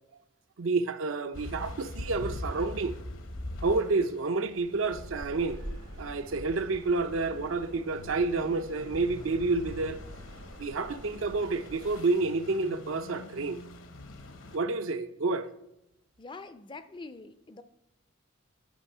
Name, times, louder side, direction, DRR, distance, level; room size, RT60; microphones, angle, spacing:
voice 1, 0.6-3.0 3.6-5.6 6.0-10.0 10.6-13.6 14.5-15.5, right 3 dB, 70° right, 0.6 m, -29 dB
sound 1, 1.3-14.6, left 1 dB, 70° left, 1.0 m, -44 dB
sound 2, 4.9-12.0, right 1 dB, 85° right, 2.1 m, -46 dB
sound 3, 7.9-11.0 12.2-15.1, left 4 dB, 85° left, 0.5 m, -51 dB
voice 2, 16.2-17.6, left 3 dB, 20° left, 0.4 m, -44 dB
10.5 x 5.4 x 5.5 m
head